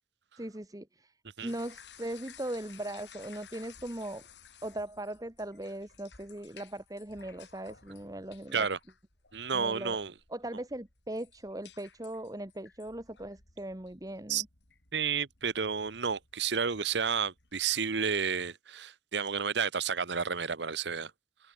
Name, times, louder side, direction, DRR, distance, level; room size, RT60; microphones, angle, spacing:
voice 1, 0.4-1.1 1.4-4.3 4.6-8.7 9.5-10.0 10.3-14.5, right 1 dB, 20° right, 1.3 m, -39 dB
sound 1, 1.5-17.7, left 7 dB, 80° left, 5.6 m, -57 dB
voice 2, 9.3-10.1 14.3-14.4 14.9-21.1, right 6 dB, 75° right, 1.0 m, -31 dB
open air
head